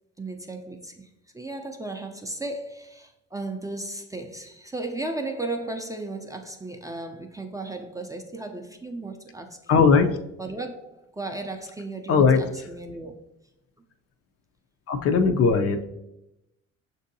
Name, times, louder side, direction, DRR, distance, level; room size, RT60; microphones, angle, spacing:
voice 1, 0.2-9.6 10.4-13.2, right 2 dB, 10° right, 0.4 m, -35 dB
voice 2, 9.7-10.2 12.1-12.4 14.9-15.8, left 5 dB, 50° left, 0.4 m, -19 dB
6.0 x 2.7 x 2.6 m
cardioid pair, 90°, 30 cm